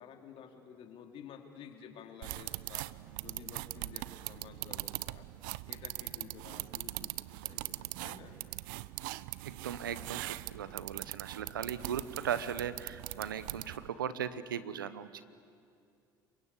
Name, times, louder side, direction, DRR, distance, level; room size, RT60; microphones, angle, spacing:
voice 1, 0.0-2.9 3.2-5.3 5.7-8.4, left 8 dB, 55° left, 5 dB, 3.1 m, -52 dB
sound 1, 2.2-13.9, right 20 dB, 75° right, 0.6 m, -41 dB
voice 2, 9.4-15.2, right 8 dB, 90° right, 14 dB, 0.9 m, -38 dB
27.5 x 23.5 x 8.3 m, 2.5 s
hypercardioid pair, 70°, 11 cm